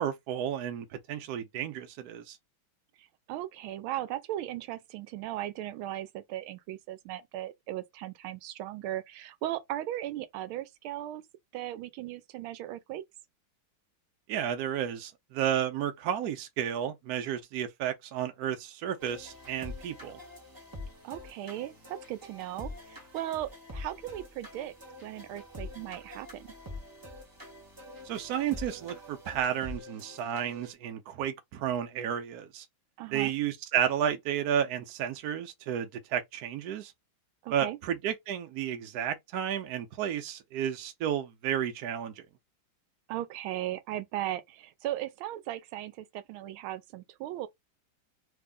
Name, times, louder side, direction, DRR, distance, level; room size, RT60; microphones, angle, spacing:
voice 1, 0.0-2.4 14.3-20.2 28.1-32.6 33.1-36.9 37.5-42.2, right 9 dB, 65° right, 1.0 m, -32 dB
voice 2, 3.0-11.2 11.5-13.0 21.0-24.7 25.0-26.5 33.0-33.3 37.4-37.8 43.1-47.5, right 13 dB, 90° right, 1.4 m, -37 dB
sound 1, 19.0-30.7, left 2 dB, 20° right, 0.5 m, -45 dB
3.5 x 2.1 x 3.7 m
omnidirectional pair, 2.3 m